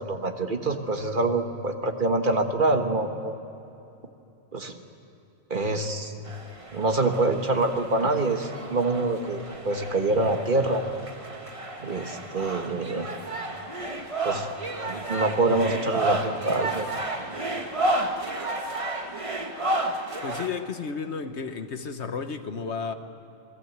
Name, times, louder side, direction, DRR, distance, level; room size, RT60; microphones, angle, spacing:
voice 1, 0.0-3.4 4.5-4.8 5.5-6.1 6.7-10.8 11.8-13.1 14.2-14.5 14.9-16.9, right 2 dB, 45° right, 5 dB, 1.6 m, -25 dB
sound 1, 6.2-20.5, right 2 dB, 30° right, 1.5 m, -32 dB
voice 2, 20.2-22.9, left 5 dB, 70° left, 8 dB, 1.4 m, -32 dB
27.5 x 19.5 x 8.1 m, 2.8 s
omnidirectional pair, 1.2 m